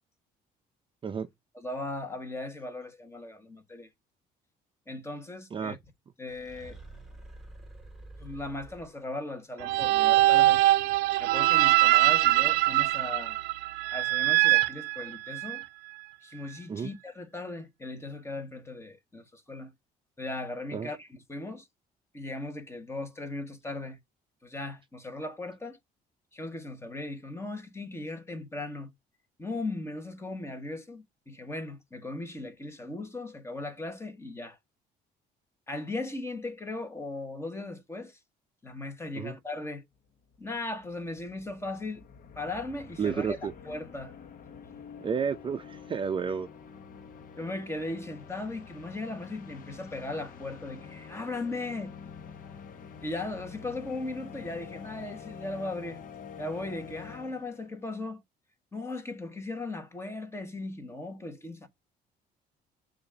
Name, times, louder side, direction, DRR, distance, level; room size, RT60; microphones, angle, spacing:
voice 1, 1.5-3.9 4.9-5.8 6.2-6.8 8.2-10.6 11.2-13.4 13.9-15.6 16.2-19.7 20.2-21.7 22.1-24.0 24.4-25.8 26.3-28.9 29.4-34.6 35.7-38.2 38.6-39.8 40.4-42.0 42.4-44.2 47.4-51.9 53.0-56.0 56.4-58.2 58.7-61.7, left 2 dB, 15° left, 1.3 m, -38 dB
sound 1, 6.3-9.3, right 2 dB, ahead, 1.4 m, -48 dB
sound 2, 9.6-15.6, right 17 dB, 85° right, 0.5 m, -23 dB
sound 3, 40.1-40.2 40.3-57.8, left 6 dB, 55° left, 1.1 m, -47 dB
voice 2, 43.0-43.5 45.0-46.5, right 6 dB, 30° right, 0.5 m, -31 dB
6.7 x 2.6 x 5.6 m
cardioid pair, 110°, 17 cm